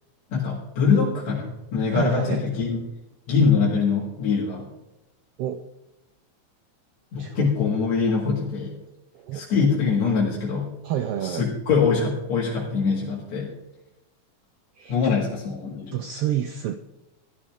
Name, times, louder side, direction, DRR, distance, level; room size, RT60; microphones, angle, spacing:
voice 1, 0.3-2.8 3.3-4.7 7.1-8.7 9.3-10.7 11.2-13.5 14.9-16.0, left 5 dB, 70° left, -5 dB, 3.1 m, -23 dB
voice 2, 1.9-2.5 5.4-5.6 7.2-7.5 9.1-9.5 10.8-11.5 14.8-15.2 15.9-16.7, right 10 dB, 85° right, 9 dB, 1.3 m, -29 dB
15.0 x 11.5 x 3.5 m, 0.95 s
omnidirectional pair, 3.3 m